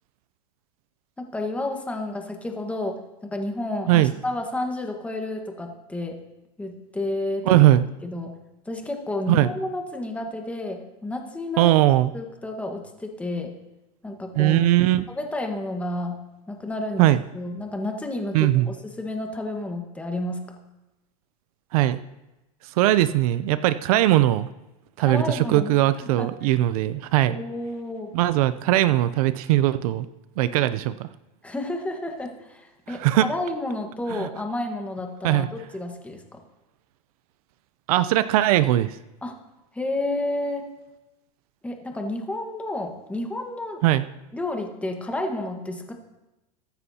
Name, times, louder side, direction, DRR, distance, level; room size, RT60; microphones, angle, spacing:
voice 1, 1.2-6.2 6.6-7.6 8.0-8.4 8.6-11.7 12.1-13.6 14.0-14.7 15.1-16.2 16.5-17.1 17.3-20.5 25.0-25.7 26.0-26.3 27.3-28.1 31.4-36.4 39.2-39.4 39.7-40.7 41.6-43.8 44.3-45.9, left 1 dB, 5° left, 3 dB, 1.4 m, -31 dB
voice 2, 7.5-7.8 9.3-9.5 11.6-12.1 14.3-15.0 17.0-17.2 18.3-18.7 21.7-22.0 22.6-24.5 25.0-27.4 28.1-30.1 30.4-31.1 32.9-33.3 34.1-34.3 35.2-35.5 37.9-39.0 43.8-44.1, right 14 dB, 65° right, 14 dB, 0.5 m, -20 dB
22.0 x 9.8 x 2.8 m, 1.0 s
supercardioid pair, 145°, 20 cm